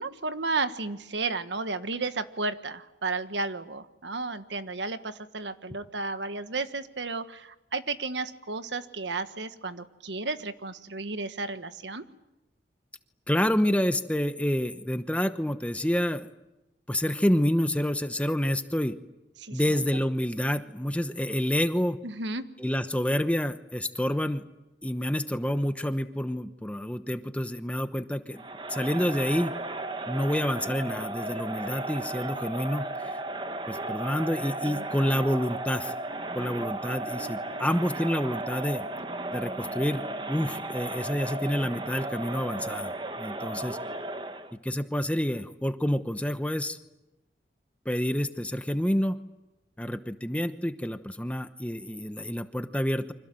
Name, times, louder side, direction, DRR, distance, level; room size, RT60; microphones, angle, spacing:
voice 1, 0.0-12.0 19.4-19.8 22.0-22.5 34.6-34.9, right 3 dB, 90° right, 10 dB, 1.5 m, -33 dB
voice 2, 13.3-16.3 16.9-18.9 19.5-22.0 22.6-24.4 24.8-28.4 28.7-29.5 30.1-32.9 33.7-35.9 36.3-38.8 39.3-42.9 43.2-43.8 44.6-46.8 47.8-49.2 49.8-53.1, equal, 5° left, 10 dB, 0.9 m, -28 dB
Crowd, 28.4-44.5, right 2 dB, 25° right, 1.2 m, -35 dB
29.0 x 25.5 x 7.7 m, 0.96 s
head